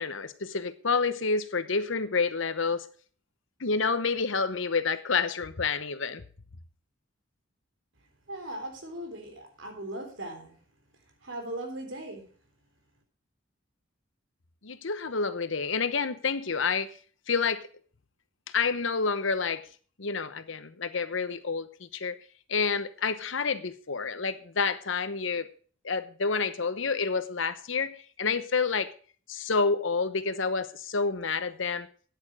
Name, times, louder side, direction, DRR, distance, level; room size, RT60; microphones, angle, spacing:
voice 1, 0.0-2.9 3.6-6.2 14.6-16.9 17.3-17.6 18.5-19.6 20.0-22.1 22.5-25.5 25.8-28.9 29.3-31.9, left 4 dB, 70° left, 1.0 m, -29 dB
voice 2, 8.3-10.6 11.2-12.2, right 1 dB, 70° right, 3.8 m, -38 dB
9.7 x 8.9 x 6.3 m
head